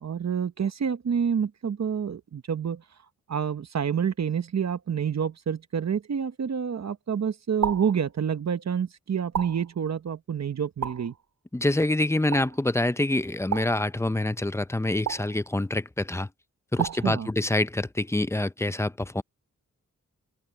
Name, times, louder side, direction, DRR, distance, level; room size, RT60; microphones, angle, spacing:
voice 1, 0.0-2.8 3.3-11.1 16.9-17.3, right 7 dB, 60° right, 1.1 m, -28 dB
sound 1, 7.6-8.0 9.3-9.7 10.8-11.2 12.3-12.6 13.5-13.9 15.1-15.4 16.8-17.2, right 8 dB, 80° right, 2.5 m, -32 dB
voice 2, 11.5-16.3 16.7-19.2, left 1 dB, 10° left, 0.6 m, -26 dB
open air
wide cardioid pair, 90°, 30 cm